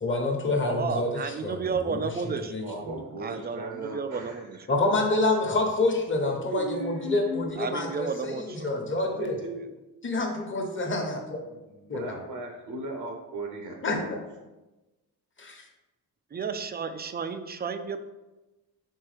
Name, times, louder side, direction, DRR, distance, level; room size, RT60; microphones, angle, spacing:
voice 1, 0.0-1.1 1.4-2.1 2.5-3.0 4.7-9.4 10.0-11.4 11.9-12.2 13.8-14.0 15.4-15.6, left 2 dB, 30° left, 1 dB, 1.1 m, -27 dB
voice 2, 0.6-2.8 3.2-4.9 7.6-9.1 16.3-18.0, right 5 dB, 25° right, 8 dB, 0.4 m, -33 dB
voice 3, 2.7-4.4 6.5-7.5 9.2-9.7 11.5-14.1, right 1 dB, 65° right, 2 dB, 0.8 m, -36 dB
4.5 x 3.5 x 3.3 m, 1.1 s
supercardioid pair, 55°, 41 cm